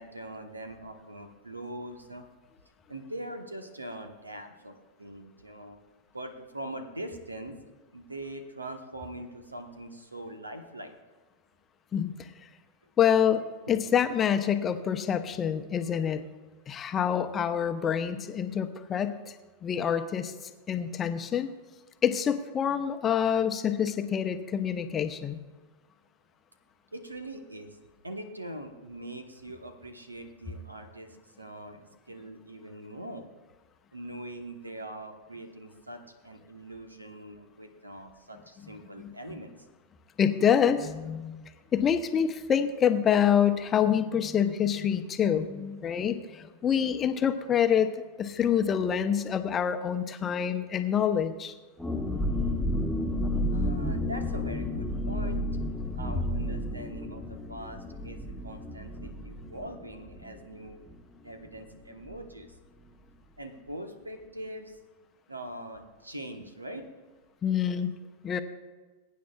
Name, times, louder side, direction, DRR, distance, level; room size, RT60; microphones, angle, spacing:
voice 1, 0.0-2.2 2.9-5.8 6.1-10.9 13.7-14.1 26.9-27.8 28.0-33.3 33.9-39.6 53.5-55.4 56.0-60.8 61.2-62.6 63.4-64.8 65.3-66.8, right 1 dB, 80° right, 7 dB, 1.2 m, -42 dB
voice 2, 11.9-12.3 13.0-13.4 13.7-16.2 16.7-19.4 19.6-20.3 20.7-21.5 22.0-25.4 39.0-39.4 40.2-51.5 67.4-67.9 68.2-68.4, left 8 dB, 25° left, 9 dB, 0.8 m, -26 dB
sound 1, 51.8-61.2 61.5-61.6 61.9-62.2, left 1 dB, ahead, 1.3 m, -32 dB
21.5 x 9.4 x 2.4 m, 1.3 s
figure-of-eight pair, 90°, 0 cm